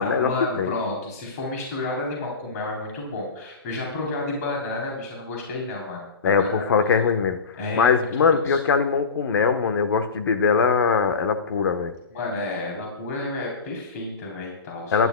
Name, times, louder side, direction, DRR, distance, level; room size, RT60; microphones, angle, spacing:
voice 1, 0.0-6.7 7.6-8.6 12.1-15.0, left 2 dB, 40° left, -2 dB, 3.7 m, -31 dB
voice 2, 6.2-7.4 7.7-11.9 14.9-15.1, left 6 dB, 60° left, 9 dB, 1.2 m, -21 dB
22.5 x 11.0 x 2.3 m, 0.91 s
hypercardioid pair, 160°, 13 cm